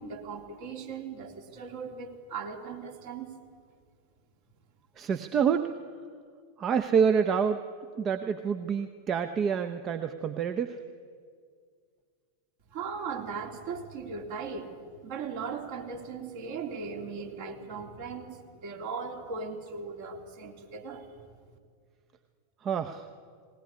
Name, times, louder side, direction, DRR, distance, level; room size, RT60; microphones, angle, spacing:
voice 1, 0.0-3.3 12.7-21.2, right 5 dB, 50° right, 2 dB, 3.3 m, -38 dB
voice 2, 5.0-5.7 6.6-7.6 8.0-10.8 22.6-23.0, right 7 dB, 30° right, 8 dB, 0.9 m, -27 dB
19.5 x 19.0 x 9.7 m, 2.1 s
figure-of-eight pair, 90°, 0 cm